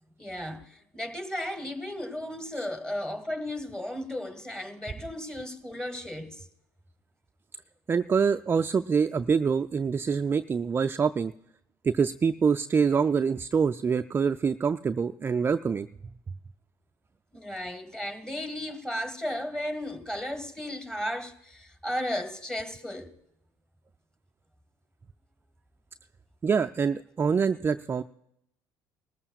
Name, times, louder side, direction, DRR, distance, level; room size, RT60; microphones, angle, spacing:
voice 1, 0.2-6.4 17.3-23.1, left 1 dB, 5° left, 1.8 m, -35 dB
voice 2, 7.9-11.3 11.8-15.9 26.4-28.0, right 6 dB, 25° right, 0.3 m, -25 dB
19.0 x 14.0 x 2.4 m
hypercardioid pair, 75°, 9 cm